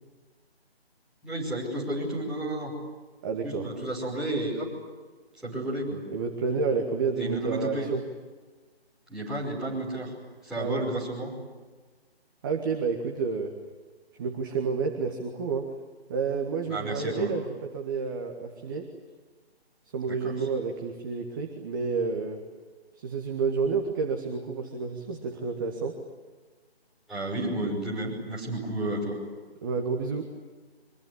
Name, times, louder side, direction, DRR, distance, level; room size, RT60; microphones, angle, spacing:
voice 1, 1.2-2.7 3.4-4.7 5.4-6.0 7.2-7.9 9.1-10.1 10.4-11.3 16.7-17.3 20.1-20.3 27.1-29.2, right 1 dB, ahead, -8 dB, 5.5 m, -31 dB
voice 2, 3.2-3.7 6.1-8.0 10.6-10.8 12.4-13.5 14.2-15.7 16.1-18.9 19.9-22.4 22.9-26.0 29.6-30.3, right 5 dB, 20° right, 3 dB, 1.7 m, -30 dB
25.0 x 23.5 x 9.8 m, 1.4 s
figure-of-eight pair, 155°, 32 cm